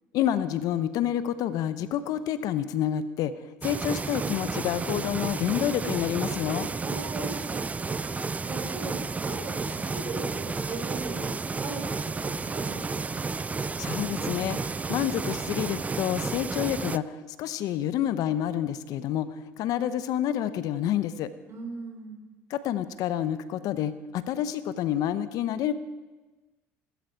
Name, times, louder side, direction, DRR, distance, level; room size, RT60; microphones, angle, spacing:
voice 1, 0.1-3.3 3.6-6.7 13.8-21.3 22.5-25.7, left 11 dB, 60° left, 13 dB, 0.9 m, -28 dB
sound 1, 3.6-17.0, right 4 dB, 20° right, 0.5 m, -32 dB
voice 2, 6.8-13.2 21.5-22.2, right 3 dB, 40° right, 0 dB, 6.6 m, -39 dB
19.0 x 13.5 x 4.7 m, 1.2 s
hypercardioid pair, 70°, 7 cm